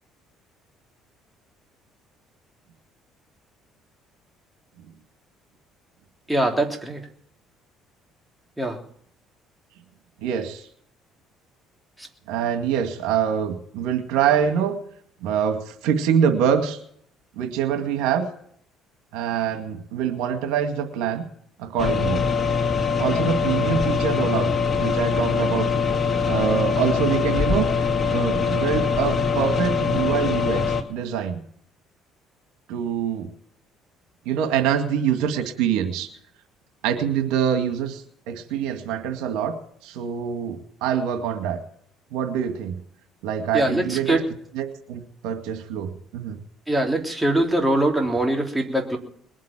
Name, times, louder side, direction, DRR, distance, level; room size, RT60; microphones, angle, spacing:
voice 1, 6.3-7.0 8.6-8.8 12.0-12.1 43.5-44.2 46.7-49.0, right 1 dB, 5° right, 1 dB, 3.3 m, -22 dB
voice 2, 10.2-10.6 12.3-14.8 15.2-16.8 17.4-18.3 19.1-21.2 21.6-22.2 23.0-24.5 24.8-25.7 26.3-31.4 32.7-33.3 34.3-36.1 36.8-39.6 39.8-41.6 42.1-42.8 43.2-44.2 44.5-46.4, right 8 dB, 85° right, 6 dB, 2.0 m, -25 dB
sound 1, 21.8-30.8, left 5 dB, 35° left, 2.0 m, -23 dB
21.0 x 7.6 x 9.0 m, 0.62 s
cardioid pair, 95°, 0 cm